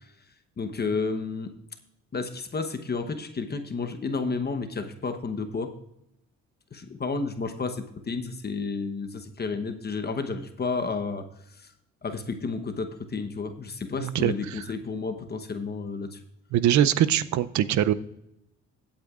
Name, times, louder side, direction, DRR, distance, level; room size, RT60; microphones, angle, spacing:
voice 1, 0.6-1.5 2.1-5.7 6.7-11.2 12.0-16.2, left 4 dB, 35° left, 7 dB, 1.0 m, -31 dB
voice 2, 14.0-14.6 16.5-17.9, right 11 dB, 70° right, 15 dB, 0.6 m, -23 dB
16.5 x 8.7 x 2.4 m, 0.82 s
cardioid pair, 90°, 30 cm